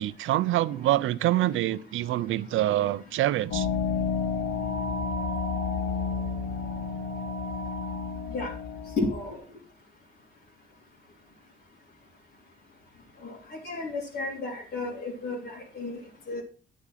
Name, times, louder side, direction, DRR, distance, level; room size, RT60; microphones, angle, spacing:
voice 1, 0.0-3.7, right 14 dB, 80° right, 0.6 m, -26 dB
sound 1, 3.5-9.3, left 5 dB, 80° left, 2.8 m, -31 dB
voice 2, 9.0-9.4 13.2-16.0 16.3-16.4, left 3 dB, 55° left, 3.3 m, -32 dB
9.5 x 6.2 x 5.8 m
cardioid pair, 90°, 20 cm